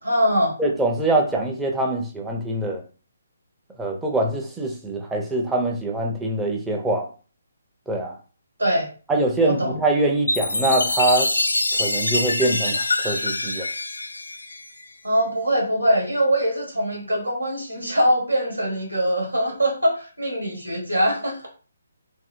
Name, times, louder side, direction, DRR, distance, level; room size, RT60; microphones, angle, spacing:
voice 1, 0.0-0.6 8.6-8.9 9.4-9.8 15.0-21.5, equal, 85° right, 0 dB, 1.3 m, -22 dB
voice 2, 0.6-2.8 3.8-7.1 7.9-8.2 9.1-11.3 11.7-13.7, right 2 dB, 5° right, 0 dB, 0.5 m, -23 dB
Chime, 10.3-15.0, left 2 dB, 85° left, 0.3 m, -25 dB
2.7 x 2.6 x 2.5 m, 0.37 s
figure-of-eight pair, 140°, 0 cm